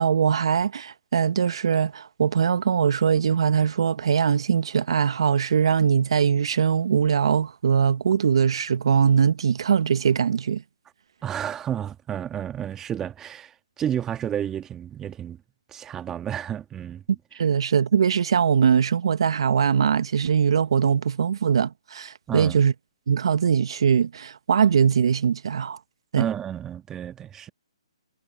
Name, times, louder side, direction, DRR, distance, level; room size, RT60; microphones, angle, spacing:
voice 1, 0.0-10.6 17.4-22.7 23.1-25.8 26.1-26.3, right 7 dB, 65° right, 1.4 m, -21 dB
voice 2, 11.2-15.4 15.7-17.0 22.3-22.6 26.2-27.5, right 10 dB, 15° right, 1.6 m, -31 dB
hypercardioid pair, 140°, 3 cm